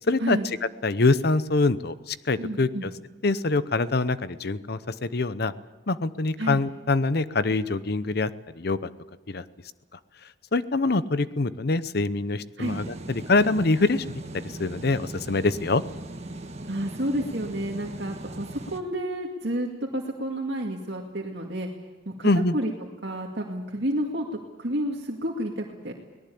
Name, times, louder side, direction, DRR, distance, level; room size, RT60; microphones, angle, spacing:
voice 1, 0.1-0.4 0.8-2.9 3.2-5.5 5.9-8.3 8.6-8.9 9.3-9.4 10.5-14.0 14.3-15.8 22.2-22.6, left 3 dB, 60° left, 14 dB, 0.8 m, -24 dB
voice 2, 2.4-2.9 6.4-6.6 12.6-12.8 16.7-21.7 22.1-22.3 22.5-22.7 23.0-24.3 24.6-25.9, right 1 dB, 65° right, -1 dB, 2.2 m, -30 dB
sound 1, 12.6-18.8, right 2 dB, 35° right, 1.5 m, -39 dB
23.5 x 18.5 x 8.6 m, 1.3 s
head